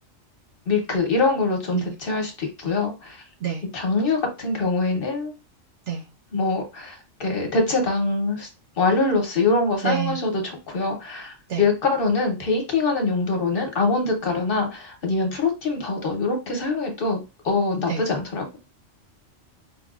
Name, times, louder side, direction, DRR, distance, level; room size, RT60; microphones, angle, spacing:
voice 1, 0.7-3.2 3.7-5.3 6.3-8.5 8.8-17.2 17.4-18.6, left 3 dB, 50° left, 2 dB, 1.0 m, -24 dB
voice 2, 9.8-10.2 11.5-11.7 17.9-18.0, right 8 dB, 70° right, 2 dB, 0.9 m, -27 dB
4.9 x 2.3 x 2.4 m, 0.27 s
omnidirectional pair, 1.3 m